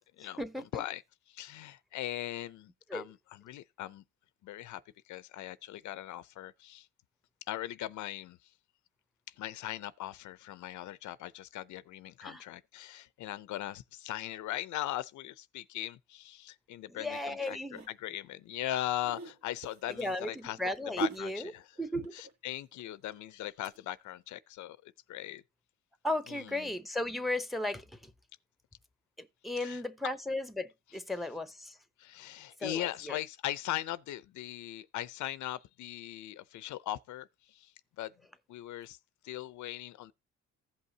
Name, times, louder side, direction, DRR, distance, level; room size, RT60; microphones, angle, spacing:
voice 1, 0.2-0.8 2.9-3.1 12.2-12.4 16.9-17.9 20.0-21.5 21.8-22.1 26.0-28.1 29.2-31.8 32.6-33.2, left 1 dB, ahead, 0.8 m, -36 dB
voice 2, 1.3-4.0 4.4-4.8 5.1-6.9 7.5-8.4 9.4-20.6 21.0-21.7 22.1-25.4 26.3-26.7 29.6-29.8 32.0-38.1 38.5-39.0 39.2-40.1, left 13 dB, 75° left, 0.6 m, -39 dB
sound 1, 17.3-17.9 18.9-23.8 24.1-24.2, right 3 dB, 65° right, 1.6 m, -41 dB
15.5 x 5.6 x 2.8 m
cardioid pair, 90°, 30 cm